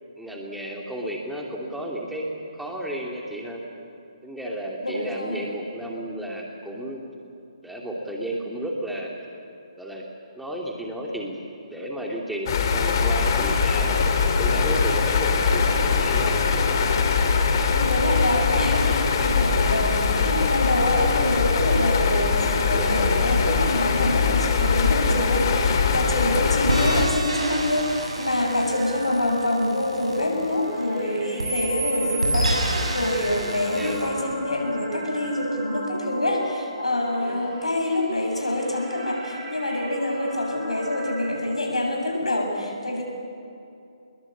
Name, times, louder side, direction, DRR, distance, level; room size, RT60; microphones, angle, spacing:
voice 1, 0.2-2.3 2.5-3.6 4.2-7.0 7.6-9.1 9.8-10.0 10.3-11.4 11.7-16.4 22.7-23.0 26.3-26.5 33.4-34.0 37.2-37.5, right 1 dB, ahead, -2 dB, 2.7 m, -33 dB
voice 2, 4.8-5.5 16.5-16.7 17.7-43.0, left 1 dB, 90° left, 1 dB, 7.5 m, -26 dB
sound 1, 12.5-27.1, left 5 dB, 40° left, 3.0 m, -22 dB
sound 2, 26.7-31.0 31.4-34.1, right 1 dB, 85° right, 7.5 m, -28 dB
sound 3, 27.3-41.3, right 2 dB, 25° right, 5.7 m, -40 dB
28.0 x 21.0 x 8.8 m, 2.7 s
figure-of-eight pair, 150°, 3 cm